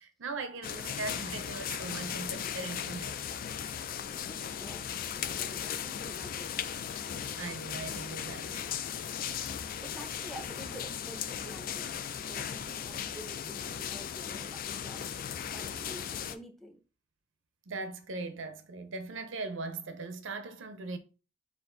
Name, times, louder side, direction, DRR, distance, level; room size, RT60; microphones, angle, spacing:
voice 1, 0.0-3.1 3.6-3.8 7.4-8.7 17.7-21.0, right 3 dB, 75° right, 0.6 m, -39 dB
sound 1, 0.6-16.3, left 8 dB, 45° left, 0.3 m, -37 dB
voice 2, 2.2-2.9 4.1-6.5 7.0-7.3 9.8-15.2 15.5-16.8, equal, ahead, 0.6 m, -49 dB
4.3 x 2.5 x 3.8 m
head